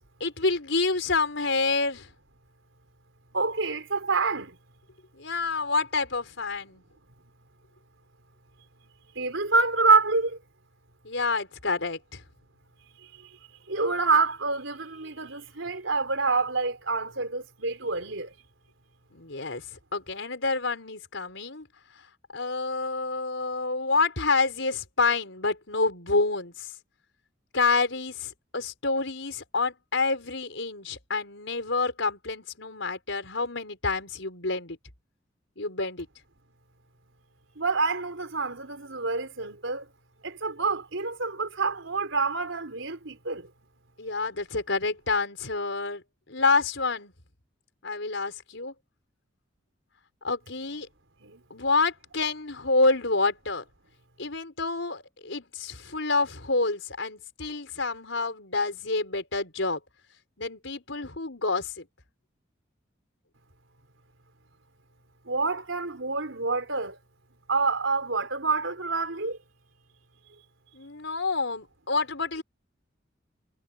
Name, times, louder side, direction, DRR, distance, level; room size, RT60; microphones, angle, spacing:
voice 1, 0.2-2.1 5.2-6.8 11.0-12.2 19.1-19.6 19.9-21.7 22.3-26.7 27.5-34.8 35.6-36.1 44.0-46.0 46.3-47.1 47.8-48.7 50.2-50.9 51.5-53.6 54.2-59.8 60.4-61.8 70.7-72.4, left 3 dB, 75° left, 4.8 m, -28 dB
voice 2, 3.3-4.6 9.1-10.4 13.2-13.3 13.7-18.3 37.6-39.9 40.2-43.5 51.2-51.4 65.2-67.0 67.5-69.4, right 4 dB, 85° right, 4.3 m, -27 dB
head